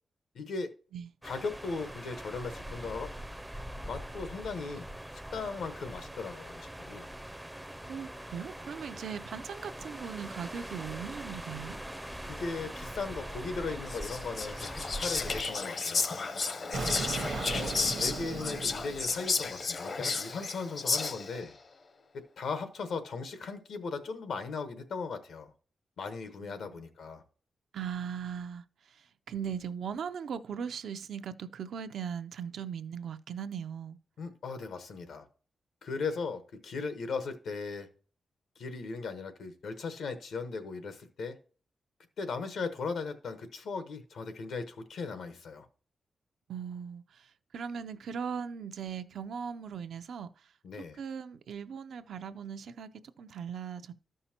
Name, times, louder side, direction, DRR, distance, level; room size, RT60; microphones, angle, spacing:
voice 1, 0.3-0.7 1.2-3.1 3.8-4.9 5.3-7.1 12.2-16.1 17.6-21.5 22.1-25.5 26.0-27.2 34.2-35.3 35.8-37.9 38.6-41.4 42.2-45.7 50.6-51.0, left 4 dB, 90° left, 1.1 m, -38 dB
sound 1, 1.2-15.4, right 1 dB, 5° right, 0.4 m, -42 dB
voice 2, 7.8-11.8 26.4-26.9 27.7-34.0 46.5-50.5 50.9-53.9, right 7 dB, 85° right, 0.5 m, -39 dB
Whispering, 13.9-21.4, left 4 dB, 50° left, 0.7 m, -33 dB
Explosion, 16.7-19.6, right 4 dB, 65° right, 0.8 m, -37 dB
13.0 x 5.5 x 2.9 m
wide cardioid pair, 120°, 0 cm